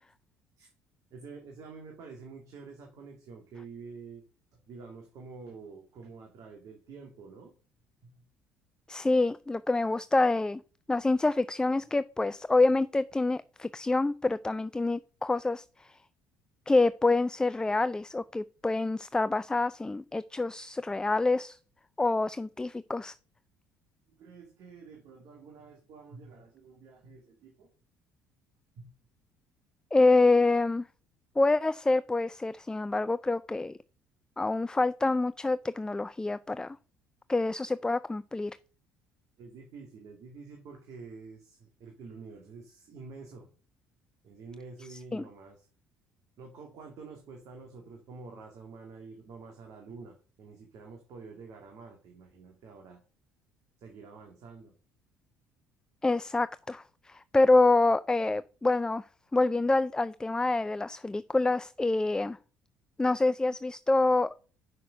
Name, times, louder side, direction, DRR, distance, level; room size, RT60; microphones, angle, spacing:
voice 1, 1.1-4.2 4.7-7.5 8.0-8.1 24.1-27.7 28.8-28.9 39.4-43.5 44.2-45.7 46.4-53.0 53.8-54.7, right 4 dB, 65° right, 2.3 m, -48 dB
voice 2, 8.9-10.6 10.9-16.0 16.7-21.6 22.0-23.1 29.9-30.9 31.4-33.8 34.4-36.8 37.3-38.6 44.9-45.3 56.0-59.1 59.3-62.4 63.0-64.3, left 2 dB, 10° left, 0.4 m, -26 dB
6.5 x 5.9 x 5.6 m
hypercardioid pair, 65°, 6 cm